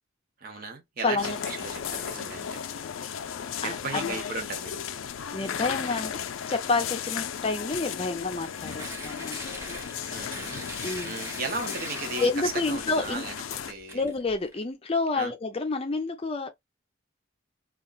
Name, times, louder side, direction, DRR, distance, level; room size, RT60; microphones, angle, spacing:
voice 1, 0.4-2.6 3.6-4.9 10.1-10.7 11.0-14.0 15.1-15.3, right 4 dB, 45° right, 0.7 m, -36 dB
voice 2, 1.0-1.4 3.6-4.2 5.3-6.1 6.5-9.4 10.8-11.2 12.2-13.2 13.9-16.5, left 3 dB, 30° left, 0.5 m, -29 dB
sound 1, 1.2-13.7, left 8 dB, 85° left, 0.4 m, -35 dB
Tearing, 8.3-14.6, right 1 dB, 15° right, 0.8 m, -42 dB
2.4 x 2.1 x 3.8 m
head